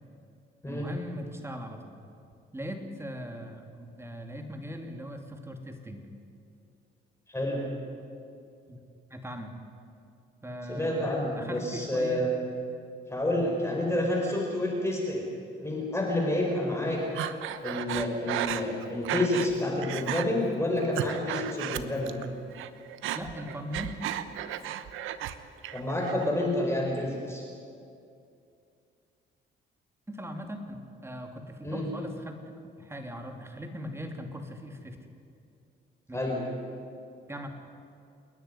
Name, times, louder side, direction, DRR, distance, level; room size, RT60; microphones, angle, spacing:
voice 1, 0.7-2.0 2.5-6.1 8.7-8.8 9.1-9.5 10.4-12.2 23.1-23.9 30.1-30.6 31.0-32.4 32.8-35.0 36.1-36.3 37.3-37.5, equal, 15° right, 4 dB, 2.9 m, -39 dB
voice 2, 7.3-7.6 10.7-12.3 13.1-15.2 15.6-17.0 17.6-22.2 25.7-27.4 31.6-31.9 36.1-36.4, left 1 dB, 15° left, -1 dB, 4.9 m, -29 dB
Breathing, 17.1-19.5 19.8-20.3 20.7-22.3 22.5-25.3 25.6-26.3, right 11 dB, 90° right, 1.0 m, -34 dB
28.0 x 10.5 x 9.9 m, 2.5 s
cardioid pair, 90°, 20 cm